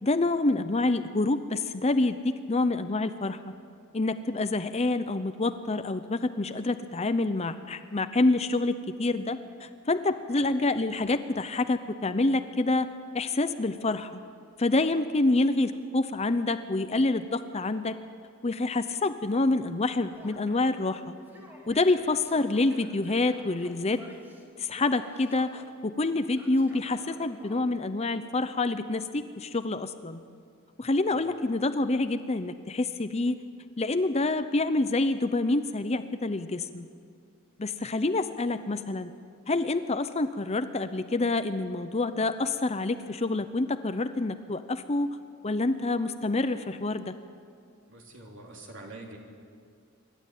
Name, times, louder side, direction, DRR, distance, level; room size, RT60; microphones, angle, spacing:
voice 1, 0.0-3.4 3.9-12.9 13.1-14.2 14.6-18.0 18.4-21.1 21.7-24.0 24.6-30.2 30.8-33.4 33.8-36.9 37.6-39.1 39.5-45.1 45.4-47.1, left 2 dB, 30° left, 10 dB, 0.6 m, -27 dB
Male speech man speaking / Yell, 20.1-20.8 21.2-24.5 24.7-25.7 26.3-27.7, equal, 10° right, 2.7 m, -51 dB
voice 2, 47.9-49.2, right 2 dB, 55° right, 0 dB, 3.5 m, -45 dB
26.0 x 12.0 x 9.2 m, 2.2 s
head